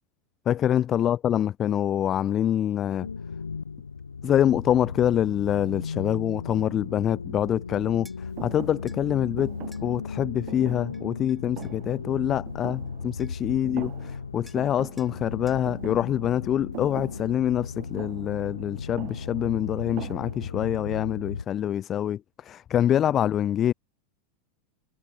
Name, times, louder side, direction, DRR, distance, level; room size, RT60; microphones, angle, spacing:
voice 1, 0.5-3.1 4.2-23.7, left 10 dB, 30° left, 0.4 m, -25 dB
sound 1, 3.0-21.4, left 5 dB, 80° left, 0.6 m, -36 dB
sound 2, 8.0-8.2 8.9-9.0 9.7-9.9 10.9-11.8 12.9-13.0 13.2-13.5 14.5-14.7 15.0-15.2 15.5-15.7, equal, ahead, 2.6 m, -55 dB
Thump thud, 8.4-13.4 13.6-14.3 14.6-20.7, right 19 dB, 45° right, 2.6 m, -43 dB
figure-of-eight pair, 85°, 0 cm